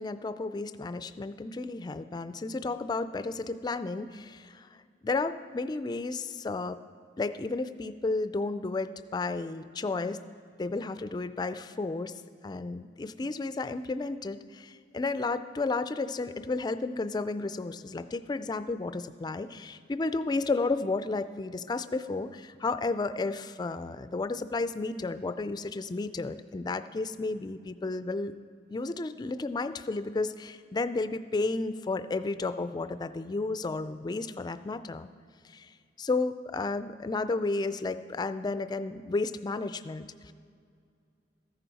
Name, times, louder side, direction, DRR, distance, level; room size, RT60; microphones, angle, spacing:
voice 1, 0.0-4.7 5.0-6.8 7.2-10.2 10.6-12.1 12.4-28.3 28.7-35.1 35.4-35.7 36.0-40.3, left 3 dB, 25° left, 12 dB, 0.3 m, -32 dB
14.5 x 10.0 x 4.1 m, 2.3 s
head